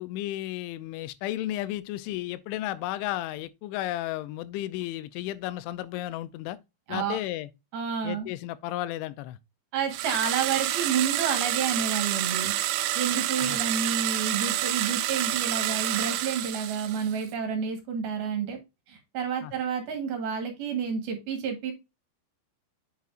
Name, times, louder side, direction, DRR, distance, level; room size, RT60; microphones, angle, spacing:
voice 1, 0.0-6.6 6.9-7.5 8.0-9.4 13.4-13.6 19.4-19.5, left 15 dB, 90° left, 3.0 m, -33 dB
voice 2, 6.9-7.2 7.7-8.3 9.7-12.5 12.9-18.6 18.9-21.7, right 6 dB, 65° right, 2.9 m, -30 dB
sound 1, 9.9-17.2, right 14 dB, 85° right, 2.7 m, -28 dB
8.3 x 6.0 x 2.5 m
omnidirectional pair, 5.3 m